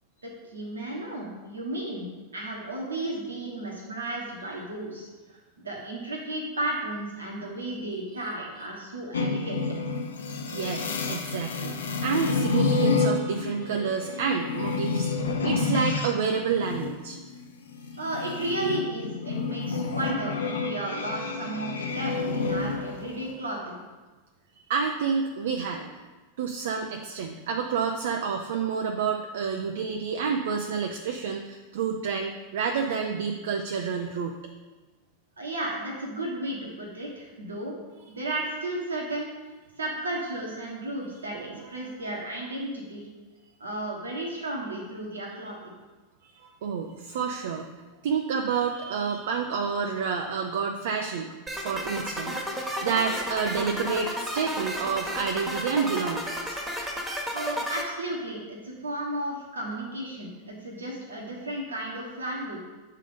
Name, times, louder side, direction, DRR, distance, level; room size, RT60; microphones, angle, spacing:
voice 1, 0.2-2.1 2.3-9.6 18.0-23.8 35.4-37.7 38.1-39.3 39.8-43.1 43.6-45.6 57.3-62.6, right 1 dB, 85° right, -2 dB, 1.3 m, -34 dB
sound 1, 9.1-16.1 16.5-23.3, left 4 dB, 80° left, 0.7 m, -29 dB
voice 2, 10.5-17.2 24.7-25.9 26.4-34.4 41.3-41.9 46.2-47.7 48.0-56.6, right 6 dB, 65° right, 3 dB, 0.5 m, -29 dB
sound 2, 51.5-57.8, equal, 10° right, 1.4 m, -32 dB
7.4 x 3.8 x 5.1 m, 1.2 s
hypercardioid pair, 95°, 0 cm